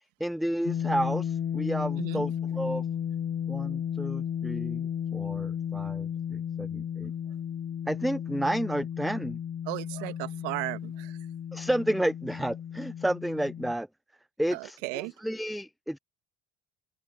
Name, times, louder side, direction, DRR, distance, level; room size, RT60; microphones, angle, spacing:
voice 1, 0.2-2.8 3.5-7.1 7.9-9.4 11.5-13.9 14.4-16.0, right 1 dB, ahead, 0.3 m, -31 dB
sound 1, 0.6-13.7, left 9 dB, 40° left, 1.3 m, -34 dB
voice 2, 9.7-11.2 14.5-15.1, right 27 dB, 75° right, 1.8 m, -35 dB
hypercardioid pair, 60°, 31 cm